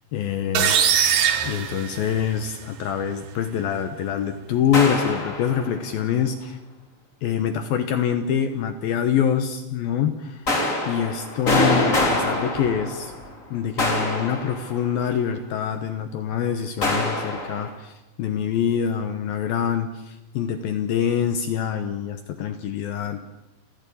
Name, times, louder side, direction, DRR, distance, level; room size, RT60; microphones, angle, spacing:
voice 1, 0.1-0.8 1.4-6.6 7.2-10.4 10.9-13.1 13.5-17.9 18.2-23.2, left 8 dB, 70° left, 8 dB, 2.4 m, -25 dB
sound 1, 0.6-2.5, right 8 dB, 65° right, 3.3 m, -21 dB
sound 2, 4.7-5.8 10.5-13.3 13.8-15.1 16.8-17.7, left 1 dB, 20° left, 2.7 m, -25 dB
29.0 x 15.0 x 8.6 m, 1.0 s
omnidirectional pair, 5.4 m